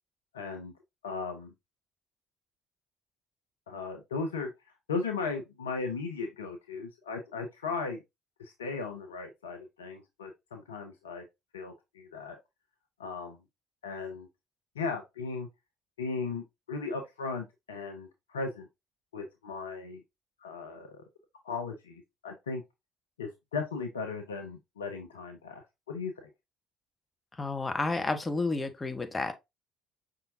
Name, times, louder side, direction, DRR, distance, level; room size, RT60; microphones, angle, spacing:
voice 1, 0.3-0.7 1.0-1.5 3.7-4.5 4.9-8.0 8.4-11.2 11.5-12.4 13.0-13.4 13.8-14.3 14.7-15.5 16.0-18.7 19.1-20.0 20.4-21.0 21.4-22.6 23.2-26.3, left 4 dB, 85° left, 0.6 m, -37 dB
voice 2, 27.4-29.3, left 3 dB, 20° left, 1.2 m, -31 dB
5.6 x 3.7 x 2.5 m
hypercardioid pair, 55°, 0 cm